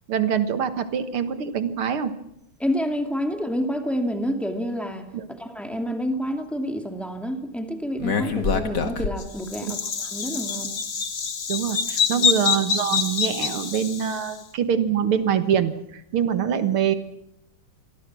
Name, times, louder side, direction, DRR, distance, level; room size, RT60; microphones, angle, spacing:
voice 1, 0.1-2.1 5.1-5.3 9.7-9.8 11.5-16.9, right 8 dB, 80° right, 10 dB, 2.3 m, -24 dB
voice 2, 2.6-10.7 12.2-12.3, equal, ahead, 4 dB, 2.4 m, -28 dB
Bird vocalization bird call bird song, 8.0-14.3, left 6 dB, 55° left, 2.4 m, -25 dB
27.0 x 23.0 x 6.2 m, 0.78 s
omnidirectional pair, 2.3 m